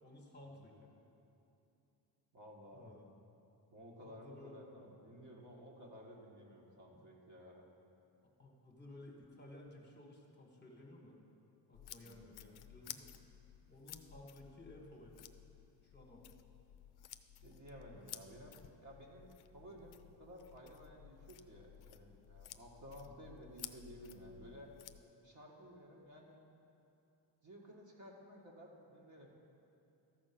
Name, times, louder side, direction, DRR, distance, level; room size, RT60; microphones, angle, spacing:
voice 1, 0.0-0.9 2.7-3.0 4.0-4.6 8.4-11.2 11.7-13.1 13.7-15.2 15.8-16.2 19.7-19.8 23.0-23.3, left 1 dB, 25° left, 0 dB, 1.4 m, -56 dB
voice 2, 2.3-3.0 3.7-7.7 12.0-12.3 17.4-24.7 25.2-26.4 27.4-29.3, equal, 40° right, -2 dB, 1.7 m, -55 dB
sound 1, 11.7-25.0, left 12 dB, 60° left, 0.5 m, -55 dB
13.5 x 4.5 x 5.9 m, 2.8 s
cardioid pair, 100°, 44 cm